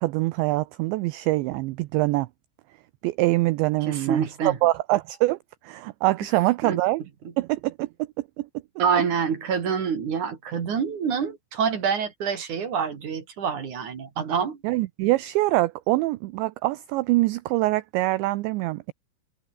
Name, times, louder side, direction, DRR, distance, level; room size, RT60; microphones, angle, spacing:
voice 1, 0.0-2.3 3.0-5.4 5.6-7.0 7.4-7.9 8.4-8.5 14.6-18.9, right 19 dB, 85° right, 2.5 m, -24 dB
voice 2, 3.8-4.6 6.6-6.8 8.8-14.6, right 6 dB, 45° right, 3.6 m, -26 dB
omnidirectional pair, 6.0 m